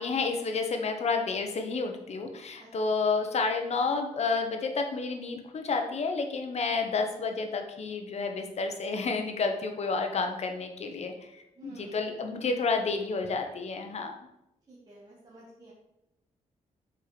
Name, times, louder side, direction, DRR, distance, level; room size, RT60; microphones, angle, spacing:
voice 1, 0.0-11.1 11.6-14.1, left 4 dB, 55° left, 5 dB, 1.2 m, -30 dB
voice 2, 2.6-2.9 11.6-12.0 14.7-15.7, right 1 dB, 30° right, -6 dB, 2.0 m, -52 dB
7.4 x 5.0 x 5.2 m, 0.88 s
cardioid pair, 95°, 13 cm